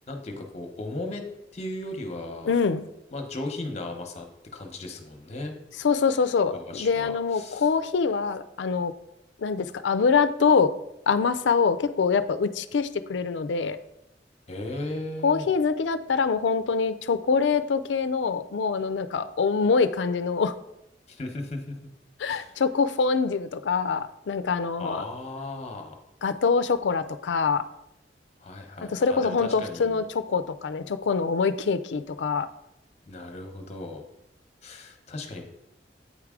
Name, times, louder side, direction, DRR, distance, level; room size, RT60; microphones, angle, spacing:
voice 1, 0.1-1.2 1.5-2.5 3.1-4.3 4.5-5.5 6.5-7.7 14.5-15.5 21.1-21.8 22.3-22.5 24.8-26.0 28.4-30.0 33.1-34.1 34.6-35.5, left 2 dB, 40° left, 4 dB, 0.9 m, -36 dB
voice 2, 2.5-2.9 5.8-8.9 9.4-10.7 11.1-13.8 15.2-20.5 22.2-25.0 26.2-27.6 28.8-32.5, left 5 dB, 85° left, 12 dB, 0.4 m, -24 dB
8.6 x 4.7 x 3.7 m, 0.86 s
head